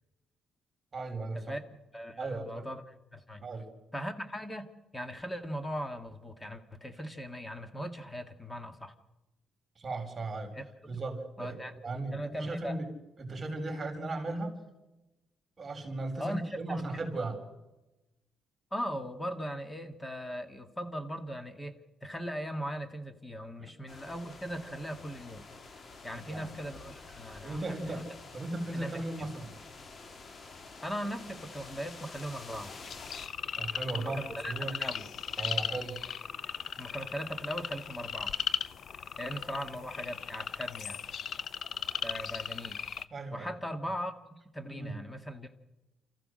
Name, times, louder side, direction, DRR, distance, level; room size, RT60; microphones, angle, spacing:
voice 1, 0.9-1.6 2.2-2.7 3.4-3.7 9.8-10.5 10.9-12.8 13.2-14.6 15.6-17.4 23.6-23.7 26.3-26.5 27.4-29.6 33.6-34.2 34.5-34.8 35.4-36.0 43.1-43.5 44.6-45.0, right 2 dB, 30° right, 4 dB, 4.3 m, -37 dB
voice 2, 1.9-3.5 3.9-4.7 4.9-8.9 10.5-10.6 11.4-11.7 12.1-12.8 16.2-16.4 16.7-16.9 18.7-25.4 26.0-28.0 28.7-29.3 30.8-32.7 34.0-35.1 36.8-38.4 39.2-41.0 42.0-42.8 43.3-45.5, equal, 15° left, 8 dB, 1.9 m, -39 dB
sound 1, 23.9-33.3, left 3 dB, 40° left, 1.8 m, -49 dB
sound 2, 32.5-43.0, left 8 dB, 60° left, 0.6 m, -37 dB
28.0 x 14.5 x 6.4 m, 1.0 s
cardioid pair, 90°, 0 cm